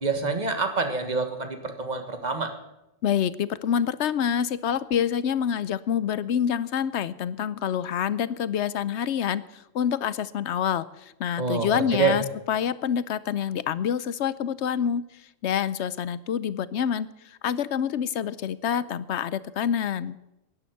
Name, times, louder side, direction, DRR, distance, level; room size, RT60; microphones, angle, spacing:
voice 1, 0.0-2.5 11.4-12.2, right 4 dB, 35° right, 7 dB, 1.7 m, -26 dB
voice 2, 3.0-15.0 15.4-20.2, left 8 dB, 70° left, 17 dB, 0.9 m, -27 dB
11.5 x 10.0 x 9.2 m, 0.91 s
omnidirectional pair, 1.3 m